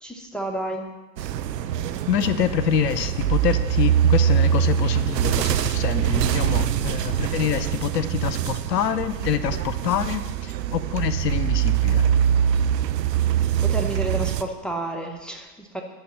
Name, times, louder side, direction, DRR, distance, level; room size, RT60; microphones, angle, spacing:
voice 1, 0.0-0.8 13.6-15.8, right 1 dB, ahead, 2 dB, 0.8 m, -30 dB
sound 1, 1.2-14.4, right 9 dB, 80° right, 0.6 m, -23 dB
voice 2, 2.1-12.0, left 9 dB, 75° left, 14 dB, 0.7 m, -26 dB
10.5 x 3.7 x 7.1 m, 1.2 s
figure-of-eight pair, 85°, 49 cm